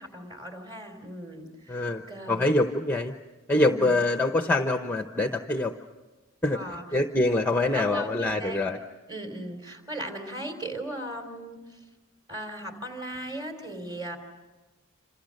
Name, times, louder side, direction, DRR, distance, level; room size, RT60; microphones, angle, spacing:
voice 1, 0.0-1.8 2.1-2.4 3.5-3.9 6.5-6.8 7.7-8.6 9.1-11.8 12.3-14.2, right 1 dB, 20° right, 6 dB, 3.5 m, -37 dB
voice 2, 1.7-2.0 2.3-3.1 3.5-5.7 6.4-8.8, left 2 dB, 10° left, 5 dB, 0.8 m, -25 dB
28.5 x 27.0 x 6.5 m, 1.2 s
head